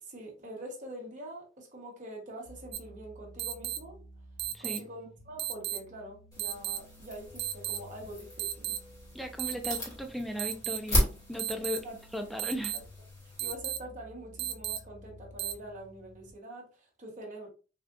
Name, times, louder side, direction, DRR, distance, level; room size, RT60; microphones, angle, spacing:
voice 1, 0.0-4.0 4.6-8.8 11.8-12.0 12.7-12.8 13.2-17.5, right 1 dB, 40° right, 1.0 m, -45 dB
sound 1, 2.4-16.3, equal, 50° left, 0.5 m, -54 dB
sound 2, 2.7-2.8 3.4-3.8 4.4-4.8 5.4-5.8 6.4-6.8 7.4-7.8 8.4-8.8 9.4-9.8 10.4-10.8 11.4-11.8 12.4-12.8 13.4-13.8 14.4-14.8 15.4-15.5, right 13 dB, 60° right, 0.3 m, -33 dB
sound 3, 6.3-13.5, left 1 dB, 20° left, 1.5 m, -36 dB
voice 2, 9.1-11.8 12.1-12.7, left 1 dB, ahead, 0.4 m, -36 dB
3.6 x 2.4 x 2.4 m
head